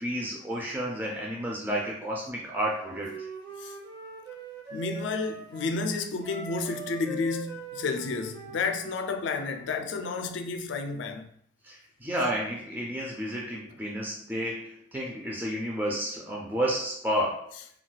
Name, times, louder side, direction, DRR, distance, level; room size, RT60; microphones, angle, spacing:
voice 1, 0.0-3.3 11.6-17.5, equal, 10° right, 0.3 m, -31 dB
Wind instrument woodwind instrument, 2.7-5.7 6.2-9.7, right 2 dB, 55° right, 0.8 m, -42 dB
voice 2, 4.7-11.3, left 4 dB, 75° left, 0.3 m, -31 dB
2.2 x 2.2 x 3.9 m
head